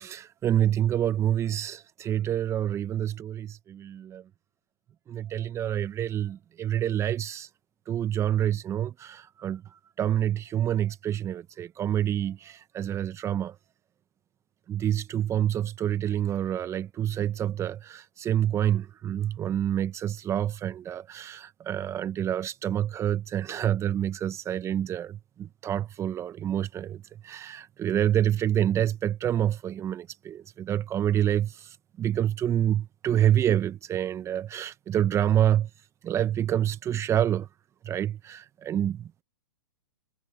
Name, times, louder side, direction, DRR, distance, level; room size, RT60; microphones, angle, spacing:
voice 1, 0.0-4.2 5.1-7.5 7.9-9.6 10.0-13.5 14.7-35.7 36.0-37.5 37.8-39.2, right 10 dB, 20° right, 1.1 m, -27 dB
hypercardioid pair, 115°, 13 cm